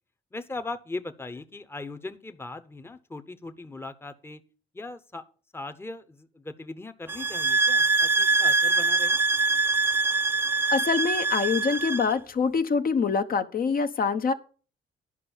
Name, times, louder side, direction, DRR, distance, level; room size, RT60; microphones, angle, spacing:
voice 1, 0.3-4.4 4.7-5.2 5.5-9.2, left 2 dB, 10° left, 0.8 m, -39 dB
sound 1, 7.1-12.1, right 3 dB, 10° right, 0.5 m, -24 dB
voice 2, 10.7-14.3, left 5 dB, 45° left, 0.8 m, -25 dB
11.0 x 5.4 x 7.0 m
cardioid pair, 90°, 20 cm